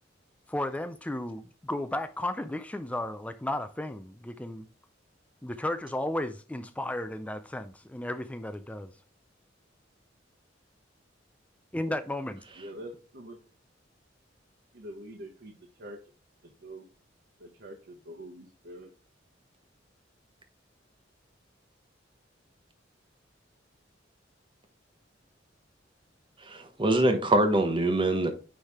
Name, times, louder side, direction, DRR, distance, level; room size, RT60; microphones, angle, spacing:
voice 1, 0.5-4.7 5.4-8.9 11.7-12.4, left 1 dB, 10° left, 0.4 m, -34 dB
voice 2, 12.6-13.4 14.7-16.0 16.6-16.9 17.4-18.9, right 1 dB, 60° right, 1.2 m, -45 dB
voice 3, 26.4-28.3, right 1 dB, 25° right, 1.0 m, -24 dB
9.7 x 3.3 x 3.5 m
head